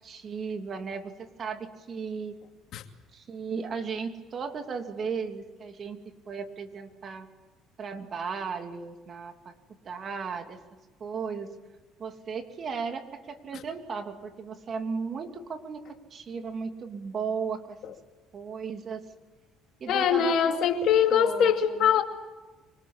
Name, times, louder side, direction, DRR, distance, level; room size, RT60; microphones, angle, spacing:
voice 1, 0.0-2.3 3.1-6.0 6.3-7.3 7.8-9.5 9.8-10.6 11.0-11.5 12.0-15.8 16.1-17.8 18.3-19.0 19.8-20.7 21.1-21.5 21.8-21.9, right 5 dB, 45° right, 6 dB, 3.0 m, -35 dB
voice 2, 19.9-22.0, left 8 dB, 65° left, 5 dB, 2.5 m, -22 dB
25.5 x 20.5 x 8.7 m, 1.2 s
supercardioid pair, 75°, 0 cm